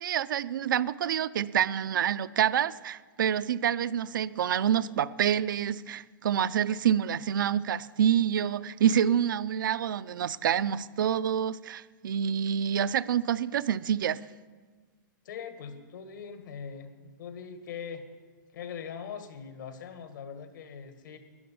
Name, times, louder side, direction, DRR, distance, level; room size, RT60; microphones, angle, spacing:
voice 1, 0.0-14.2, right 9 dB, 70° right, 14 dB, 0.5 m, -27 dB
voice 2, 15.3-18.0 18.5-21.2, left 7 dB, 65° left, 8 dB, 1.9 m, -41 dB
13.5 x 10.5 x 8.6 m, 1.4 s
hypercardioid pair, 170°, 11 cm